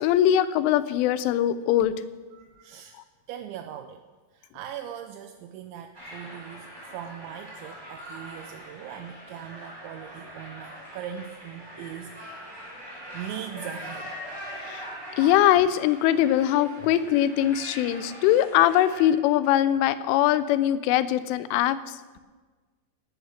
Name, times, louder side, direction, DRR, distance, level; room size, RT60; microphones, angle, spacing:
voice 1, 0.0-1.9 14.6-14.9 15.2-22.0, left 12 dB, 90° left, 14 dB, 3.2 m, -22 dB
voice 2, 2.3-3.0 3.3-4.0 4.3-12.5 13.1-14.2, right 10 dB, 80° right, 6 dB, 2.9 m, -40 dB
sound 1, 5.9-19.0, equal, 5° right, 3.7 m, -42 dB
17.5 x 8.1 x 6.4 m, 1.3 s
omnidirectional pair, 5.5 m